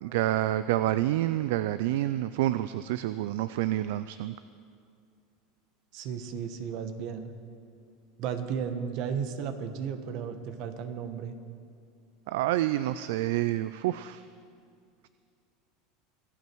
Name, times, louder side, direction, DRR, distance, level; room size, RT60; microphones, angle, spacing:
voice 1, 0.0-4.3 12.3-14.2, right 14 dB, 75° right, 14 dB, 0.3 m, -28 dB
voice 2, 5.9-7.3 8.2-11.3, right 7 dB, 60° right, 9 dB, 1.3 m, -34 dB
24.0 x 8.4 x 4.6 m, 2.3 s
supercardioid pair, 105°, 0 cm